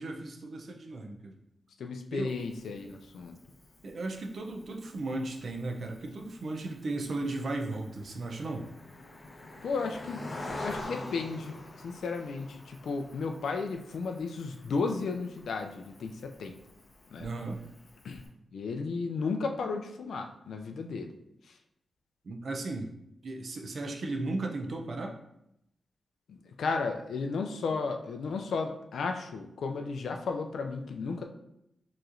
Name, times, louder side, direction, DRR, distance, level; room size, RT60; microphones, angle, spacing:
voice 1, 0.0-1.4 2.1-2.4 3.8-8.7 17.2-17.6 22.2-22.9 23.2-25.1, right 2 dB, 55° right, 3 dB, 0.5 m, -35 dB
voice 2, 1.8-3.4 9.6-10.3 10.6-16.5 17.1-17.3 18.0-18.2 18.5-21.1 21.4-21.6 26.3-31.2, left 4 dB, 90° left, 4 dB, 0.3 m, -34 dB
Cricket, 2.3-18.3, left 2 dB, 35° left, 0.7 m, -47 dB
4.6 x 3.0 x 2.6 m, 0.80 s
wide cardioid pair, 125°, 0 cm